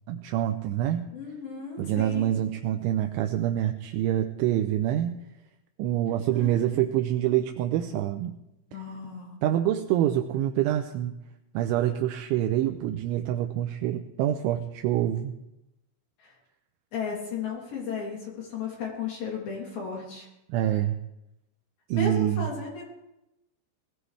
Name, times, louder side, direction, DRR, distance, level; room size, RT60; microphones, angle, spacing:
voice 1, 0.1-1.1 1.8-5.2 5.8-8.4 9.4-11.2 11.5-15.3 20.5-21.0 21.9-22.5, right 12 dB, 80° right, 5 dB, 3.0 m, -26 dB
voice 2, 1.1-2.3 6.4-6.8 8.7-9.4 16.2-16.3 16.9-20.3 21.9-22.8, left 5 dB, 50° left, -3 dB, 4.3 m, -35 dB
20.0 x 16.0 x 3.3 m, 0.91 s
omnidirectional pair, 5.9 m